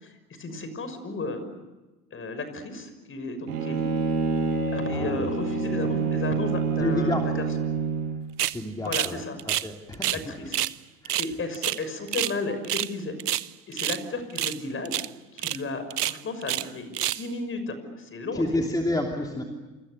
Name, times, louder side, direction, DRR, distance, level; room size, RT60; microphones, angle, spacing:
voice 1, 0.0-1.4 2.1-3.9 4.7-7.4 8.8-9.4 10.1-10.6 11.2-13.2 13.7-15.0 15.3-18.8 19.3-19.4, left 3 dB, 25° left, 10 dB, 6.2 m, -34 dB
Bowed string instrument, 3.5-8.2, right 4 dB, 65° right, 6.9 m, -27 dB
voice 2, 4.9-5.3 6.8-7.2 8.5-9.2 9.6-10.3 11.0-11.2 18.3-19.4, left 1 dB, 10° left, 2 dB, 3.0 m, -29 dB
sound 1, 8.4-8.6 8.9-9.1 9.4-10.2 10.5-10.7 11.0-12.4 12.6-12.9 13.2-14.0 14.3-14.6 14.8-15.1 15.4-15.6 15.9-16.7 16.9-17.3, right 12 dB, 80° right, 0.8 m, -28 dB
28.5 x 27.5 x 6.7 m, 1.1 s
figure-of-eight pair, 75°, 46 cm